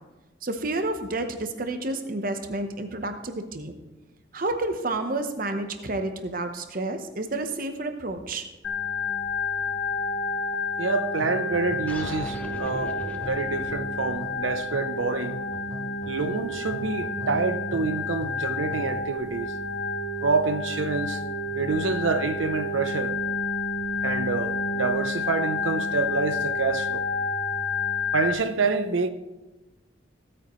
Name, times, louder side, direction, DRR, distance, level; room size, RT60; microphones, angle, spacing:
voice 1, 0.4-3.7 4.3-8.5, right 2 dB, 45° right, 0.9 m, -30 dB
Organ, 8.6-28.3, left 3 dB, 70° left, 1.6 m, -30 dB
voice 2, 10.8-15.4 16.1-19.5 20.2-21.2 21.5-23.1 24.0-27.1 28.1-29.1, right 4 dB, 90° right, 0.7 m, -27 dB
sound 1, 11.2-19.1, right 1 dB, 20° right, 0.5 m, -41 dB
sound 2, 11.9-16.9, equal, 10° left, 0.8 m, -43 dB
15.5 x 9.0 x 3.1 m
head